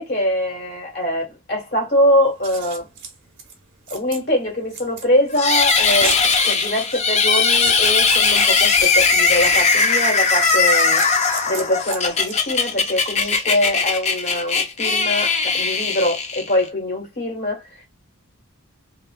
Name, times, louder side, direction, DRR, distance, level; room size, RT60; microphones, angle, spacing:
voice 1, 0.0-2.9 3.9-11.0 11.5-17.8, left 1 dB, 45° left, 1.4 m, -23 dB
Scissors, 2.2-12.8, right 5 dB, 55° right, 0.9 m, -35 dB
sound 1, 5.4-16.7, left 4 dB, 30° left, 0.6 m, -19 dB
3.1 x 2.7 x 2.4 m
head